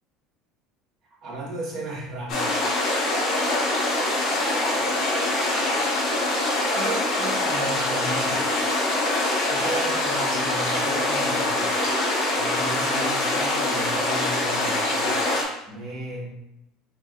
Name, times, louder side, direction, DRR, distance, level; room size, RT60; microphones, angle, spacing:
voice 1, 1.2-2.8 6.7-8.5 9.5-11.8 12.3-15.1 15.7-16.4, right 2 dB, 40° right, -4 dB, 1.7 m, -35 dB
sound 1, 2.3-15.4, left 2 dB, 50° left, 1.2 m, -24 dB
3.8 x 3.2 x 3.9 m, 0.85 s
cardioid pair, 140°, 0 cm